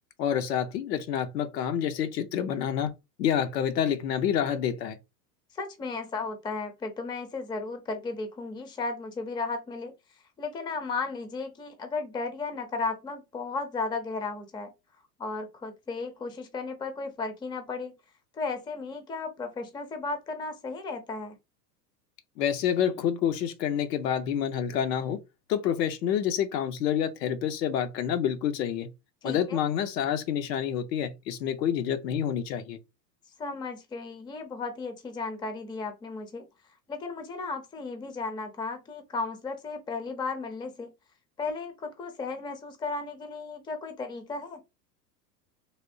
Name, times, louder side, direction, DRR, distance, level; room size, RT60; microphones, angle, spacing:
voice 1, 0.2-2.9 3.2-5.0 22.4-25.2 25.5-28.9 29.2-32.8, left 9 dB, 75° left, 0.7 m, -28 dB
voice 2, 5.5-9.9 10.4-14.7 15.2-17.9 18.3-21.3 29.2-29.6 33.4-36.5 36.9-40.9 41.4-44.6, left 4 dB, 10° left, 0.5 m, -35 dB
3.4 x 2.3 x 2.6 m
hypercardioid pair, 100°, 50 cm